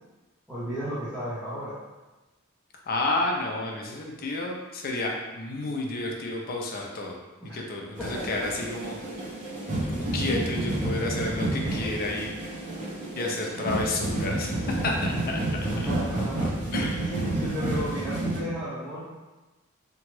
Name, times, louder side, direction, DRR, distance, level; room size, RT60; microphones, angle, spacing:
voice 1, 0.5-1.8 7.5-7.6 8.0-8.2 15.7-16.5 16.9-19.0, right 1 dB, ahead, -14 dB, 0.8 m, -34 dB
voice 2, 2.9-7.2 7.5-9.0 9.9-12.4 13.2-15.4 16.7-17.1, left 2 dB, 45° left, 0 dB, 0.5 m, -30 dB
sound 1, 7.9-18.4, right 1 dB, 35° right, 0.7 m, -30 dB
2.9 x 2.3 x 3.0 m, 1.1 s
head